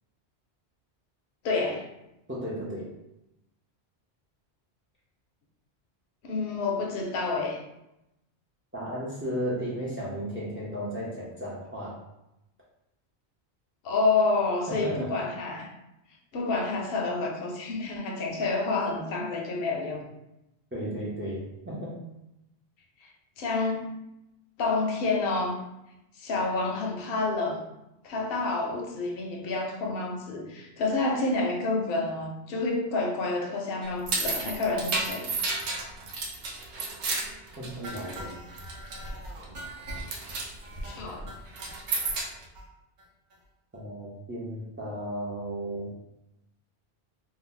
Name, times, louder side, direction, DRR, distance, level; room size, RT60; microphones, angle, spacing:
voice 1, 1.4-1.9 6.2-7.6 13.8-15.7 16.3-20.0 23.0-23.1 23.4-23.9 24.6-25.6 26.1-27.6 28.0-35.3 40.8-41.3, left 3 dB, 65° left, 1 dB, 0.8 m, -29 dB
voice 2, 2.3-2.9 8.7-12.0 14.7-15.1 20.7-22.0 37.6-38.3 43.7-45.9, equal, 20° right, -6 dB, 0.4 m, -34 dB
sound 1, 33.8-38.3 38.6-39.1 39.4-39.7 40.0-40.5 41.5-42.4, right 3 dB, 80° right, 0.9 m, -31 dB
sound 2, 37.8-42.1 42.5-42.7 43.0-43.1 43.3-43.4 43.7-43.8, right 1 dB, 55° right, 0.7 m, -41 dB
2.6 x 2.1 x 3.7 m, 0.90 s
omnidirectional pair, 1.1 m